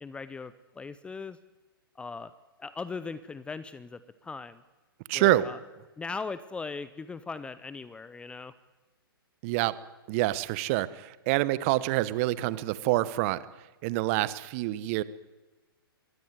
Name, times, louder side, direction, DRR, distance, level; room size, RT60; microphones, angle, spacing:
voice 1, 0.0-1.4 2.0-2.3 2.6-4.6 5.1-5.6 6.0-8.5, left 4 dB, 10° left, 15 dB, 0.7 m, -39 dB
voice 2, 5.1-5.4 9.4-9.7 10.1-13.4 13.8-15.0, right 17 dB, 35° right, 17 dB, 1.1 m, -26 dB
22.5 x 17.0 x 9.4 m, 1.2 s
figure-of-eight pair, 120°, 13 cm